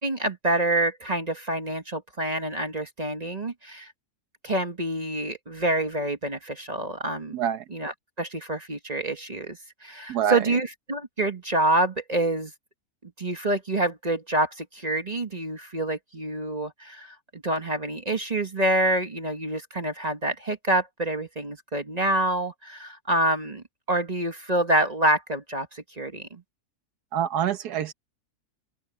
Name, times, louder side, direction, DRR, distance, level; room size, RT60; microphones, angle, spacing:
voice 1, 0.0-3.9 4.4-7.4 7.7-12.5 13.2-26.4, right 1 dB, 25° right, 1.3 m, -27 dB
voice 2, 7.3-7.6 10.1-10.4 27.1-27.9, right 9 dB, 85° right, 1.5 m, -26 dB
open air
omnidirectional pair, 1.6 m